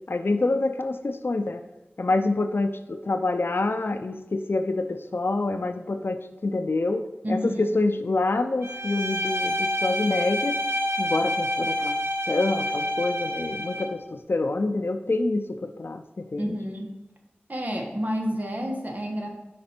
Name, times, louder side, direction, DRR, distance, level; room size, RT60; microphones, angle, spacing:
voice 1, 0.1-1.6 2.0-10.6 11.0-12.0 12.3-16.5, left 2 dB, 70° left, 8 dB, 0.4 m, -26 dB
voice 2, 7.2-7.7 16.4-17.0 17.5-19.3, equal, 45° right, 1 dB, 1.4 m, -29 dB
Bowed string instrument, 8.6-14.0, equal, 80° right, 0.6 m, -28 dB
5.2 x 5.0 x 4.3 m, 1.1 s
wide cardioid pair, 40°, 4 cm